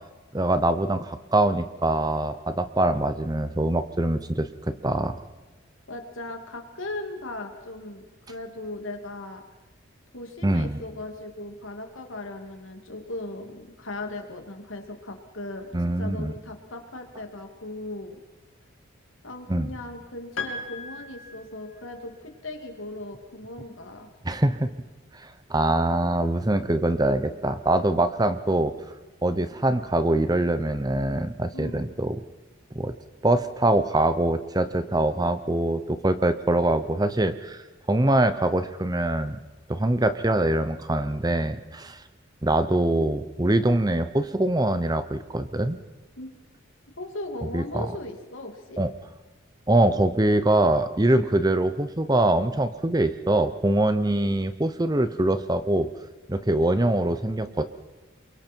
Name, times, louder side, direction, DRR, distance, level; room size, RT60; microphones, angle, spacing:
voice 1, 0.3-5.2 10.4-10.8 15.7-16.3 19.5-19.7 24.2-24.7 25.1-28.7 29.2-32.2 32.7-32.9 33.2-37.6 37.9-39.4 39.7-42.0 42.4-45.8 47.5-47.9 48.8-48.9 49.7-55.9 56.3-57.6, right 1 dB, 20° right, 11 dB, 0.7 m, -23 dB
voice 2, 5.9-9.4 10.1-15.7 16.0-18.2 19.2-24.1 31.5-31.9 46.2-46.3 47.0-48.8, left 2 dB, 70° left, 4 dB, 2.7 m, -38 dB
Piano, 20.4-22.1, left 4 dB, 90° left, 3.0 m, -37 dB
28.0 x 23.0 x 4.6 m, 1.2 s
head